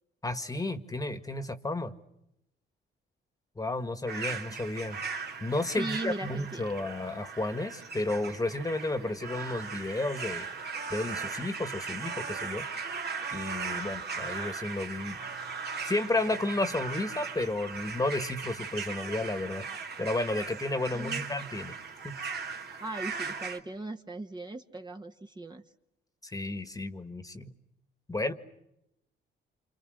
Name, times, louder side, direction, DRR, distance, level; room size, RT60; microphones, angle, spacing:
voice 1, 0.2-1.9 3.6-5.0 5.4-10.5 10.9-12.6 13.3-15.2 15.9-19.7 20.0-21.8 22.0-22.2 26.2-27.5 28.1-28.3, left 2 dB, 15° left, 10 dB, 1.7 m, -32 dB
sound 1, 4.1-23.6, right 5 dB, 55° right, 2.8 m, -38 dB
voice 2, 5.8-6.7 20.9-21.3 22.8-25.6, right 2 dB, 20° right, 5 dB, 1.5 m, -38 dB
28.0 x 27.5 x 6.5 m, 0.84 s
cardioid pair, 90°, 20 cm